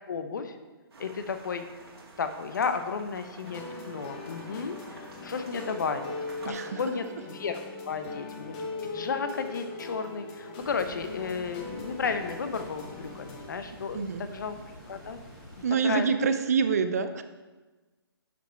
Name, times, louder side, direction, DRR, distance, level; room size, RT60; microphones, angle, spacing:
voice 1, 0.1-0.6 1.0-1.6 2.2-4.8 5.2-6.1 6.4-7.6 7.9-14.5 14.9-15.2 15.8-16.1, left 5 dB, 50° left, 8 dB, 0.8 m, -33 dB
sound 1, 0.9-6.5, right 2 dB, 75° right, 2.1 m, -49 dB
sound 2, 3.4-13.5, left 3 dB, 20° left, 0.8 m, -40 dB
voice 2, 6.4-6.8 13.9-14.3 15.6-17.2, right 6 dB, 40° right, 10 dB, 0.5 m, -26 dB
sound 3, 10.6-15.7, equal, ahead, 1.6 m, -48 dB
11.0 x 5.2 x 4.4 m, 1.2 s
hypercardioid pair, 165°, 13 cm